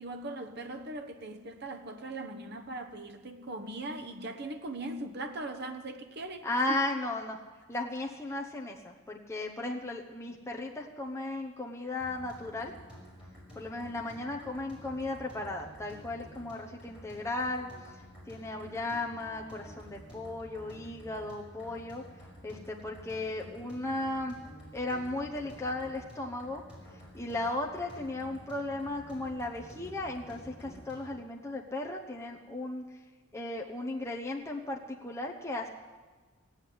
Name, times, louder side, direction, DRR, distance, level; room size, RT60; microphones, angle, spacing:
voice 1, 0.0-6.8, right 2 dB, 50° right, 1.2 m, -40 dB
voice 2, 6.4-7.4 7.7-12.7 13.5-17.7 18.3-22.0 22.4-24.4 24.7-26.6 27.1-32.8 33.3-35.7, left 2 dB, 15° left, 1.0 m, -35 dB
sound 1, 12.0-31.2, equal, 5° right, 5.6 m, -50 dB
16.5 x 8.1 x 9.5 m
head